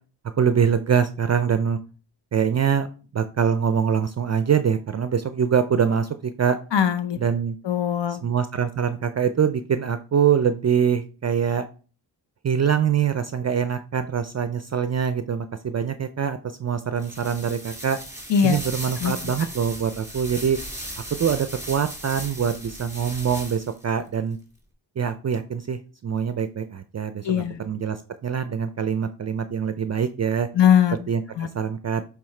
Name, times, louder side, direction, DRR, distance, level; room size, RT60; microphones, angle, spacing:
voice 1, 0.4-1.8 2.3-2.9 3.1-6.6 7.2-7.6 8.2-11.7 12.4-18.0 18.4-20.6 21.2-24.4 25.0-28.0 28.2-30.5 31.1-32.0, right 7 dB, 40° right, 10 dB, 0.4 m, -24 dB
voice 2, 6.7-7.2 7.6-8.2 18.3-18.6 19.0-19.1 27.2-27.6 30.5-31.0 31.4-31.5, left 9 dB, 70° left, 11 dB, 0.8 m, -20 dB
sound 1, 17.0-23.8, right 1 dB, 5° right, 1.8 m, -37 dB
8.4 x 3.5 x 3.2 m, 0.37 s
cardioid pair, 75°, 44 cm